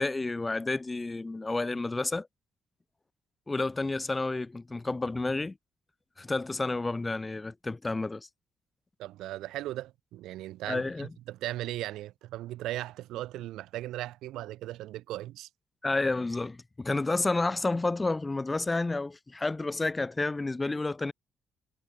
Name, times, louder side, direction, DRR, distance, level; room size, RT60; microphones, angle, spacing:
voice 1, 0.0-2.3 3.5-5.6 6.2-8.3 10.7-11.1 15.8-21.1, left 3 dB, 20° left, 4.8 m, -30 dB
voice 2, 9.0-10.8 11.3-15.5, right 15 dB, 90° right, 6.4 m, -37 dB
cardioid pair, 90°, 0 cm